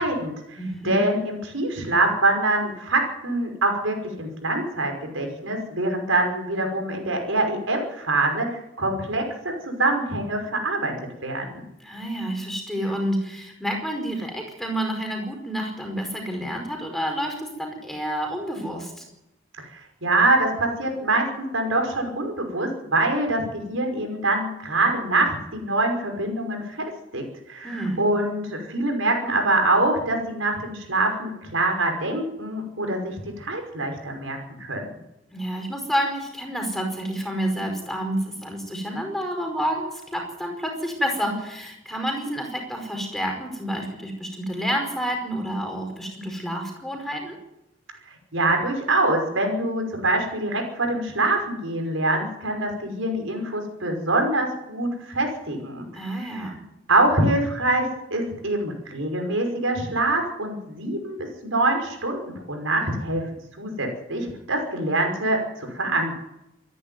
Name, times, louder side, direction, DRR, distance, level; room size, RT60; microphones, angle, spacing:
voice 1, 0.0-0.6 0.8-9.2 9.7-10.9 11.2-11.6 20.0-21.3 21.5-26.8 27.1-34.9 48.3-56.5 56.9-57.8 58.1-61.2 61.4-62.2 62.5-63.2 63.6-65.4 65.7-66.1, right 2 dB, 85° right, 3 dB, 5.6 m, -24 dB
voice 2, 0.6-1.0 11.8-19.0 27.6-28.1 35.3-47.4 55.9-56.6, equal, ahead, 2 dB, 4.9 m, -29 dB
26.5 x 11.0 x 9.5 m, 0.89 s
head